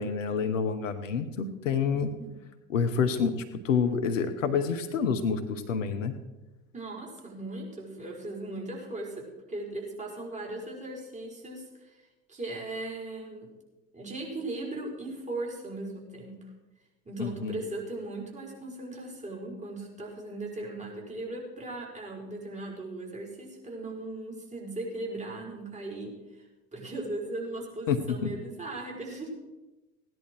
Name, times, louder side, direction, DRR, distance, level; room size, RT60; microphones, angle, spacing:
voice 1, 0.0-2.1 2.7-3.3 3.6-6.1 17.2-17.6 27.9-28.3, left 6 dB, 70° left, 8 dB, 1.2 m, -28 dB
voice 2, 6.7-12.0 12.3-13.5 13.9-16.4 17.0-26.5 26.7-29.3, right 2 dB, 15° right, -2 dB, 5.0 m, -38 dB
17.0 x 11.0 x 4.7 m, 1.1 s
figure-of-eight pair, 70°, 40 cm